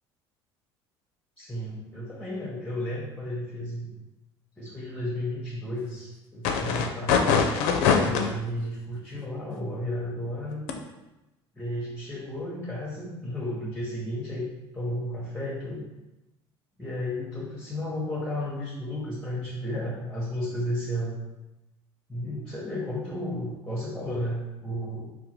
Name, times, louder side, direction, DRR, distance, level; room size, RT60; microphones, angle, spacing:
voice 1, 1.4-3.9 4.6-7.4 8.0-10.6 11.5-14.5 14.7-15.9 16.8-21.1 22.1-25.1, left 1 dB, 5° left, -5 dB, 0.8 m, -33 dB
sound 1, 6.4-8.3 10.7-10.8, left 6 dB, 60° left, 0.4 m, -22 dB
3.8 x 2.1 x 2.9 m, 1.0 s
figure-of-eight pair, 65°, 14 cm